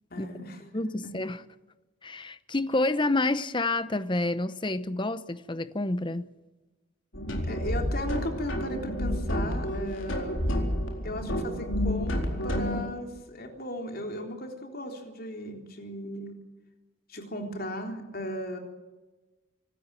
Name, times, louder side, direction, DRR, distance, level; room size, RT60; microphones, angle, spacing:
voice 1, 0.1-0.6 7.4-10.4 11.0-16.4 17.1-18.6, left 1 dB, 45° left, 3.7 m, -36 dB
voice 2, 0.7-1.4 2.0-6.3, left 2 dB, 25° left, 0.8 m, -28 dB
sound 1, 7.1-12.8, equal, 70° left, 4.2 m, -30 dB
25.5 x 13.5 x 9.0 m
head